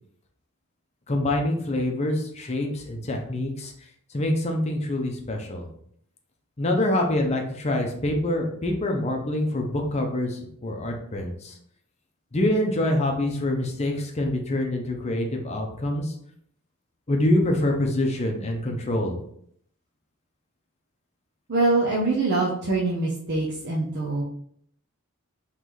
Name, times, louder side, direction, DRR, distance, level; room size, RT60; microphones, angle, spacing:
voice 1, 1.1-3.7 4.1-5.7 6.6-11.6 12.3-16.1 17.1-19.2, left 1 dB, 30° left, 2 dB, 0.7 m, -25 dB
voice 2, 21.5-24.2, right 2 dB, 50° right, -4 dB, 0.7 m, -24 dB
3.9 x 3.2 x 3.1 m, 0.67 s
head